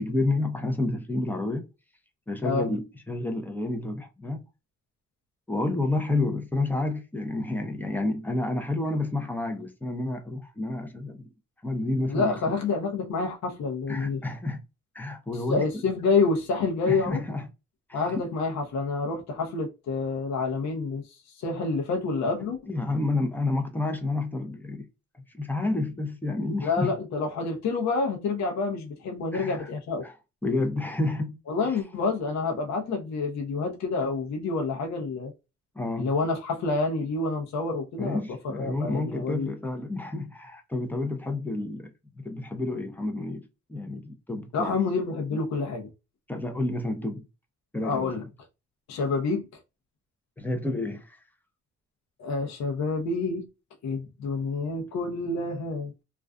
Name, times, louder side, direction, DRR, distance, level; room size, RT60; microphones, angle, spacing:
voice 1, 0.0-1.6 2.3-4.4 5.5-11.3 11.6-12.4 13.9-14.6 14.9-15.8 16.9-17.5 17.9-18.2 22.4-24.9 25.3-26.9 29.3-29.7 30.0-30.1 30.4-31.4 35.8-36.1 38.0-44.8 45.3-45.4 46.3-47.2 47.7-48.1 50.4-51.2, left 2 dB, 5° left, 0.6 m, -30 dB
voice 2, 12.1-14.2 15.5-17.2 17.9-21.0 21.4-22.6 26.6-30.0 31.5-35.3 36.0-38.2 38.4-39.5 44.5-45.9 47.8-48.2 48.9-49.5 52.2-53.5 53.8-56.0, left 4 dB, 65° left, 0.7 m, -28 dB
2.5 x 2.3 x 2.2 m
cardioid pair, 90°, 30 cm